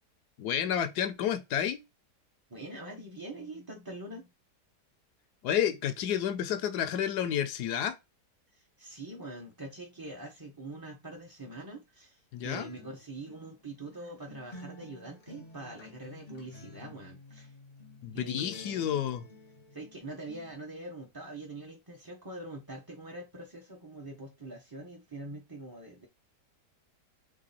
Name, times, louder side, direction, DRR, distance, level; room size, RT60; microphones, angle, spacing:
voice 1, 0.4-1.8 5.4-8.0 12.3-12.7 18.0-19.2, left 9 dB, 75° left, 1.1 m, -30 dB
voice 2, 2.5-4.3 8.8-17.5 18.1-18.8 19.7-26.1, right 2 dB, 20° right, 0.5 m, -44 dB
Acoustic guitar, 12.5-20.5, left 2 dB, 35° left, 0.7 m, -52 dB
3.7 x 3.3 x 4.1 m
omnidirectional pair, 1.8 m